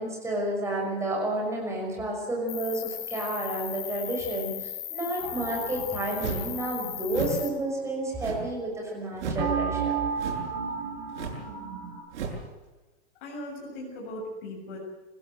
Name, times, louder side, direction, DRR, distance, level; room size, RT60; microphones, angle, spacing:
voice 1, 0.0-10.0, right 1 dB, 10° right, -1 dB, 5.9 m, -31 dB
Cricket, 2.5-7.5, left 12 dB, 65° left, 3.3 m, -37 dB
sound 1, 5.2-9.0 9.3-12.0, right 6 dB, 45° right, 7.8 m, -34 dB
sound 2, 6.2-6.5 7.1-7.4 8.2-8.6 9.2-9.5 10.2-10.5 11.1-11.5 12.1-12.4, right 4 dB, 80° right, 7.4 m, -34 dB
voice 2, 13.2-14.8, left 1 dB, 50° left, -2 dB, 7.2 m, -38 dB
25.5 x 16.0 x 7.9 m, 1.2 s
supercardioid pair, 170°, 34 cm